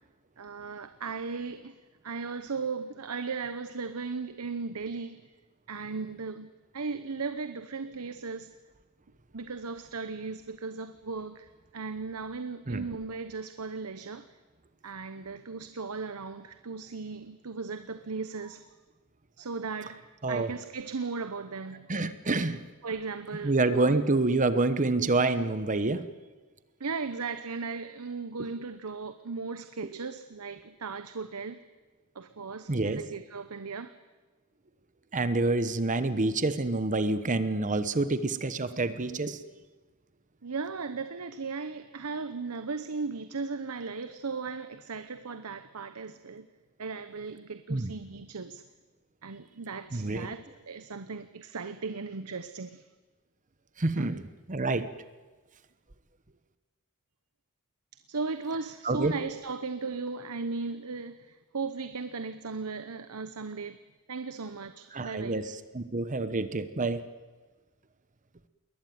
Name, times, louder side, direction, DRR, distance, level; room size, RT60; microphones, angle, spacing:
voice 1, 0.4-1.8 2.0-5.2 5.7-8.5 9.3-14.3 14.8-18.7 19.4-22.0 22.8-24.0 26.8-31.6 32.1-33.9 40.4-46.5 46.8-48.6 49.2-52.9 54.0-54.1 58.1-63.8 64.1-65.4, right 4 dB, 80° right, 11 dB, 0.9 m, -37 dB
voice 2, 21.9-22.6 23.4-26.1 32.7-33.0 35.1-39.4 47.7-47.9 49.9-50.3 53.8-54.2 54.5-54.9 58.8-59.1 64.9-67.0, right 2 dB, 35° right, 12 dB, 1.0 m, -27 dB
21.5 x 19.5 x 9.4 m, 1.3 s
head